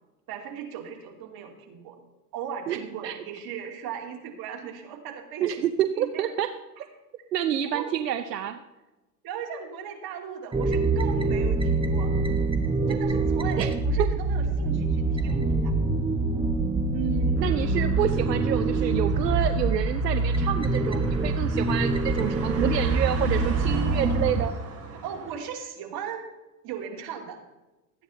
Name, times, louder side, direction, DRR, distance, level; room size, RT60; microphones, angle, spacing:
voice 1, 0.3-2.0 2.3-5.6 6.0-6.3 6.8-6.9 7.7-7.9 9.2-12.2 12.9-15.7 16.9-17.4 25.0-26.3 26.6-27.4, right 8 dB, 50° right, 2 dB, 2.6 m, -37 dB
voice 2, 5.4-6.5 7.3-8.6 13.6-13.7 17.4-24.5, right 10 dB, 85° right, 9 dB, 0.7 m, -28 dB
sound 1, 10.5-24.5, right 3 dB, 10° right, 1.0 m, -25 dB
sound 2, 17.4-25.4, right 4 dB, 30° right, 2.9 m, -40 dB
14.0 x 9.3 x 4.1 m, 1.1 s
hypercardioid pair, 85°, 47 cm